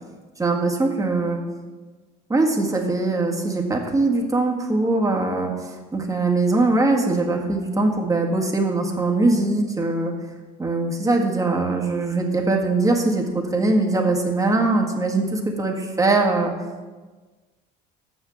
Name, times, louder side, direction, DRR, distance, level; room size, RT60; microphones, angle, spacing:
voice 1, 0.4-1.4 2.3-10.1 10.6-16.5, right 2 dB, 15° right, 0 dB, 1.7 m, -21 dB
7.0 x 6.3 x 7.1 m, 1.3 s
supercardioid pair, 75°, 20 cm